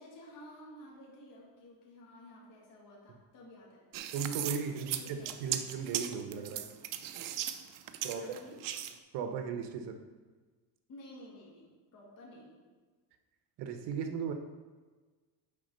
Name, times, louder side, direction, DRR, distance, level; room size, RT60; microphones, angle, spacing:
voice 1, 0.0-4.0 4.6-5.6 8.0-8.6 10.9-12.6, left 1 dB, 45° left, -4 dB, 2.2 m, -53 dB
sound 1, 3.9-8.9, right 11 dB, 50° right, 0.6 m, -37 dB
voice 2, 4.1-6.7 8.0-8.4 9.1-10.0 13.6-14.3, right 6 dB, 70° right, 7 dB, 1.0 m, -37 dB
7.2 x 5.1 x 5.4 m, 1.4 s
cardioid pair, 145°, 43 cm